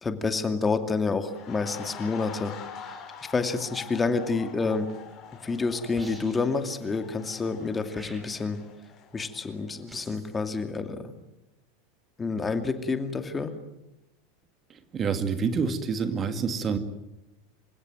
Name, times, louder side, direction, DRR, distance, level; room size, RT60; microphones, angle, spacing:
voice 1, 0.0-2.6 3.3-4.9 5.4-8.6 9.1-11.1 12.2-13.5, left 4 dB, 20° left, 8 dB, 2.5 m, -28 dB
sound 1, 1.2-10.1 10.4-10.6, left 7 dB, 40° left, 5.8 m, -45 dB
sound 2, 5.9-6.6 7.9-8.6 9.9-10.3, right 1 dB, 10° right, 5.7 m, -47 dB
voice 2, 14.7-16.8, right 5 dB, 30° right, 9 dB, 2.2 m, -28 dB
27.5 x 16.5 x 9.4 m, 0.92 s
hypercardioid pair, 85°, 0 cm